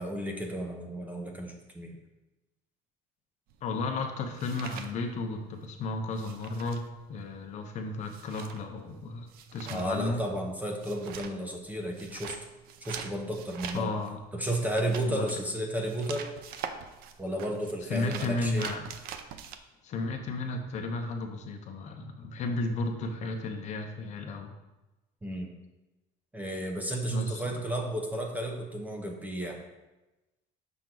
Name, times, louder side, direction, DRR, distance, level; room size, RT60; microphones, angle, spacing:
voice 1, 0.0-2.0 9.7-12.4 12.8-13.9 14.3-16.3 17.2-18.7 25.2-25.5 26.3-29.6, right 1 dB, 10° right, 2 dB, 0.7 m, -33 dB
sound 1, 3.5-5.7 5.9-19.6, right 7 dB, 60° right, 0.6 m, -44 dB
voice 2, 3.6-10.2 13.7-14.2 15.1-15.4 17.9-18.8 19.8-24.5 27.1-27.6, left 3 dB, 45° left, 4 dB, 0.8 m, -34 dB
6.0 x 5.8 x 3.9 m, 1.0 s
cardioid pair, 165°, 17 cm